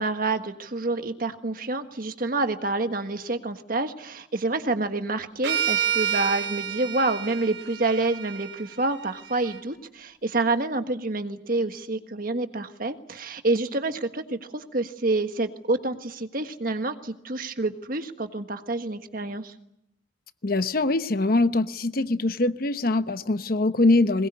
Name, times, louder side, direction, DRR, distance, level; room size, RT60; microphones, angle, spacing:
voice 1, 0.0-19.5, right 2 dB, 50° right, 1.5 m, -28 dB
sound 1, 5.4-9.6, right 9 dB, 80° right, 4.6 m, -29 dB
voice 2, 20.4-24.3, left 2 dB, 50° left, 1.0 m, -23 dB
22.0 x 21.0 x 9.7 m
head